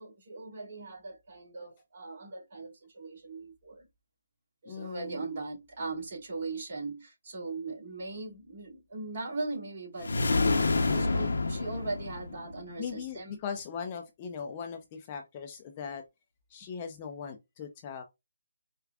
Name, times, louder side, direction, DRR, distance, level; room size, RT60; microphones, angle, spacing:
voice 1, 0.0-3.8 4.6-13.4, right 3 dB, 40° right, 2.4 m, -39 dB
voice 2, 4.7-5.2 12.8-16.0 16.5-18.0, left 6 dB, 25° left, 0.5 m, -39 dB
sound 1, 10.0-12.6, left 3 dB, 70° left, 0.8 m, -28 dB
4.7 x 2.4 x 2.3 m
hypercardioid pair, 165°, 0 cm